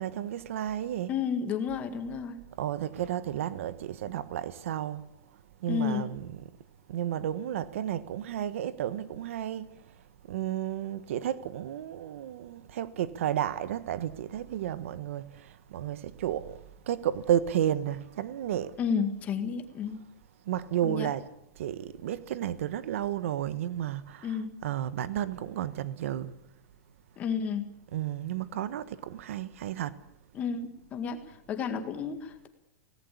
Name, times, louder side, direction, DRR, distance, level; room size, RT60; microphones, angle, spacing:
voice 1, 0.0-1.2 2.6-5.1 5.6-6.5 6.9-9.7 10.3-18.7 20.5-21.3 21.6-26.3 27.9-30.0, right 11 dB, 60° right, 1.3 m, -32 dB
voice 2, 1.1-2.4 5.7-6.1 18.8-20.0 20.8-21.1 24.2-24.5 27.2-27.7 30.3-31.2 31.5-32.5, left 6 dB, 20° left, 1.9 m, -31 dB
24.5 x 18.5 x 8.6 m
supercardioid pair, 180°, 8 cm